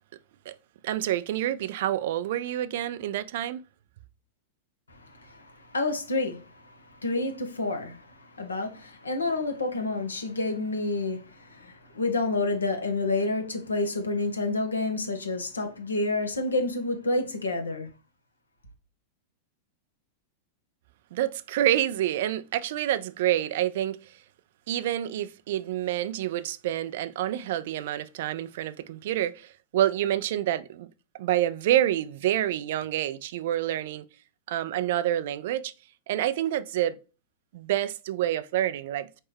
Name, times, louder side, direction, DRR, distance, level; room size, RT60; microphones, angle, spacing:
voice 1, 0.8-3.6 21.1-24.0 24.7-30.9 31.2-34.0 34.5-35.7 36.1-37.0 37.5-39.2, right 12 dB, 60° right, 0.4 m, -28 dB
voice 2, 4.9-17.9, left 2 dB, 90° left, 1.0 m, -29 dB
4.3 x 3.2 x 3.4 m
hypercardioid pair, 100°, 0 cm